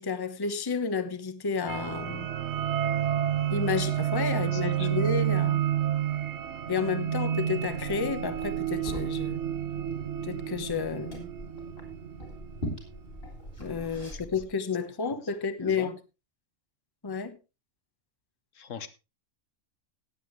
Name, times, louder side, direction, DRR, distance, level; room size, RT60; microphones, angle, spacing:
voice 1, 0.0-2.3 3.5-5.7 6.7-9.4 10.2-11.3 13.6-16.0 17.0-17.4, left 5 dB, 20° left, 0.8 m, -31 dB
sound 1, 1.7-12.9, right 10 dB, 65° right, 1.1 m, -30 dB
voice 2, 4.3-4.9 13.8-14.2 15.6-15.9 18.5-18.9, left 7 dB, 75° left, 1.4 m, -42 dB
Liquid, 7.7-14.4, left 1 dB, 50° left, 3.7 m, -42 dB
18.5 x 7.7 x 3.1 m
omnidirectional pair, 1.3 m